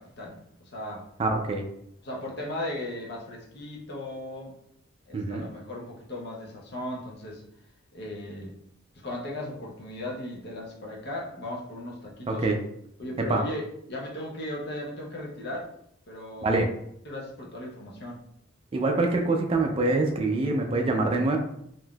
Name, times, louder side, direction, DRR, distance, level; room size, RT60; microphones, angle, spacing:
voice 1, 0.0-1.0 2.0-4.5 5.1-7.4 7.9-8.6 9.0-12.5 13.0-15.7 16.1-16.7 17.0-18.2, left 1 dB, 55° left, -2 dB, 0.7 m, -37 dB
voice 2, 1.2-1.7 5.1-5.5 12.3-12.6 13.3-13.4 16.4-16.7 18.7-21.4, right 2 dB, 25° right, 3 dB, 0.3 m, -25 dB
3.6 x 2.6 x 2.3 m, 0.73 s
head